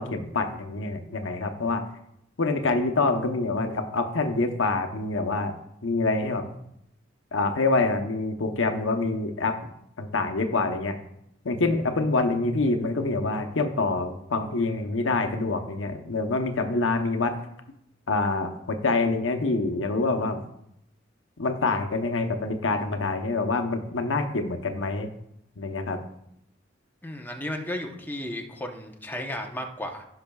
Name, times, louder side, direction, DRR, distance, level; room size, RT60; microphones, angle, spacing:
voice 1, 0.0-1.8 2.4-5.5 5.8-6.4 7.3-9.7 10.0-11.0 11.4-17.4 18.1-20.4 21.4-25.1 25.6-26.0, left 3 dB, 85° left, 6 dB, 0.9 m, -26 dB
voice 2, 27.0-30.1, left 1 dB, 10° left, 2 dB, 0.9 m, -34 dB
16.0 x 5.8 x 2.3 m, 0.78 s
head